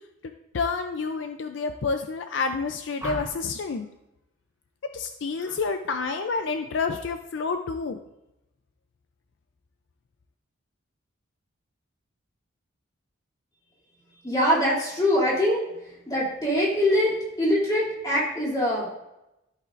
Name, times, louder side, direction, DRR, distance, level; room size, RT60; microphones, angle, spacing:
voice 1, 0.5-3.9 4.9-8.0, left 4 dB, 65° left, 7 dB, 0.4 m, -29 dB
sound 1, 3.0-3.6 5.4-5.6 6.0-6.4, equal, 15° right, 2.5 m, -38 dB
voice 2, 14.2-18.9, left 1 dB, 20° left, -6 dB, 2.7 m, -24 dB
13.5 x 5.7 x 2.5 m, 0.91 s
head